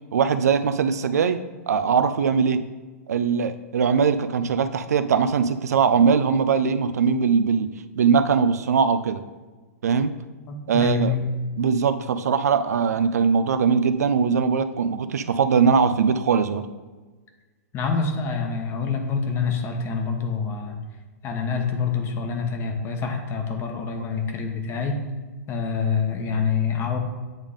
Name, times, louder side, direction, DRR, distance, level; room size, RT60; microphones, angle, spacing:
voice 1, 0.1-1.4 1.7-2.6 3.1-7.7 8.0-9.2 9.8-10.1 10.7-11.1 11.6-16.7, right 6 dB, 75° right, 11 dB, 0.4 m, -21 dB
voice 2, 10.5-11.3 17.7-20.8 21.2-25.0 25.5-27.0, left 5 dB, 30° left, 4 dB, 1.1 m, -26 dB
8.8 x 3.6 x 3.6 m, 1.3 s
hypercardioid pair, 115°, 9 cm